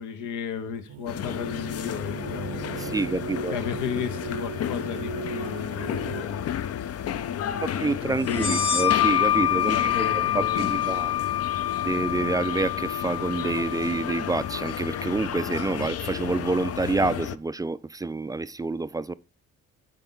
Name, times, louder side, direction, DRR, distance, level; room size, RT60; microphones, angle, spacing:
voice 1, 0.0-2.7 3.5-6.9 7.3-8.7 9.5-11.3, left 7 dB, 85° left, 1.0 m, -35 dB
sound 1, 0.9-6.2, right 8 dB, 75° right, 0.8 m, -38 dB
sound 2, 1.1-17.4, left 9 dB, 55° left, 0.5 m, -33 dB
voice 2, 2.8-3.6 7.6-11.2 11.8-19.1, right 3 dB, 15° right, 0.3 m, -28 dB
sound 3, 8.3-15.6, left 11 dB, 15° left, 0.9 m, -27 dB
11.5 x 4.0 x 3.9 m
cardioid pair, 90°, 30 cm